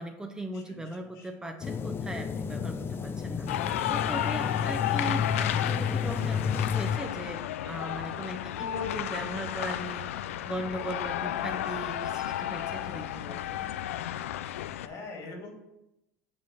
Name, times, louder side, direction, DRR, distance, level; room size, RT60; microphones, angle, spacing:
voice 1, 0.0-13.7, right 1 dB, 10° right, 5 dB, 0.8 m, -39 dB
voice 2, 0.5-1.3 14.8-15.5, left 3 dB, 65° left, 1 dB, 2.4 m, -44 dB
sound 1, 1.6-7.0, left 7 dB, 35° left, 0.6 m, -31 dB
sound 2, 3.5-14.9, left 12 dB, 90° left, 0.3 m, -33 dB
7.8 x 4.1 x 6.0 m, 0.90 s
supercardioid pair, 90°, 7 cm